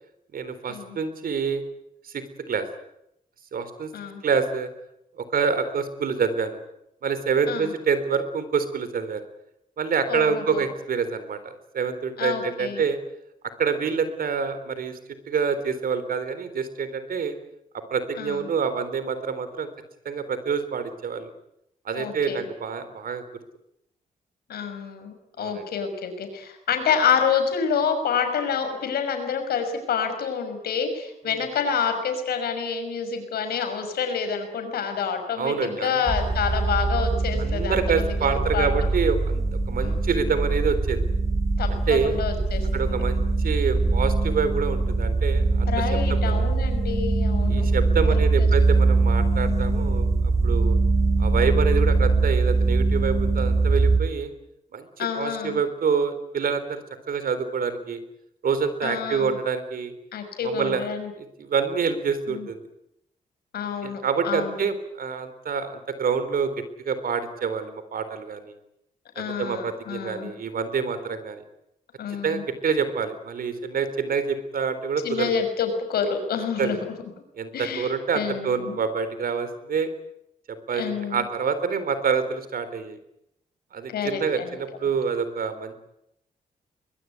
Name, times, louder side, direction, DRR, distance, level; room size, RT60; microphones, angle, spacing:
voice 1, 0.3-1.6 2.0-2.7 3.5-3.9 4.2-4.7 5.2-6.6 7.0-9.2 9.8-13.0 13.6-15.0 15.3-17.4 17.7-19.7 20.0-21.3 21.8-23.2 25.4-25.6 31.3-31.4 35.4-36.0 37.4-41.0 41.7-42.1 42.7-45.7 46.1-46.5 47.5-50.8 51.2-54.3 54.7-56.8 57.1-58.0 58.4-59.9 60.4-60.9 61.2-62.6 63.8-66.5 66.8-68.5 69.2-71.4 72.2-75.3 76.6-76.8 77.4-79.9 80.5-83.0 83.7-85.8, right 6 dB, 70° right, 11 dB, 3.9 m, -27 dB
voice 2, 10.1-10.6 12.2-12.8 18.2-18.4 21.9-22.4 24.5-38.7 39.8-40.0 41.6-43.0 45.7-47.7 48.4-48.5 55.0-55.6 58.8-59.3 60.1-61.1 62.3-62.5 63.5-64.6 69.2-70.3 72.0-72.4 75.0-76.8 77.5-78.8 80.7-81.2 83.9-84.5, left 6 dB, 85° left, 7 dB, 6.0 m, -28 dB
sound 1, 36.1-54.0, right 3 dB, 20° right, 4.6 m, -22 dB
22.5 x 21.5 x 9.5 m, 0.80 s
cardioid pair, 70°, 16 cm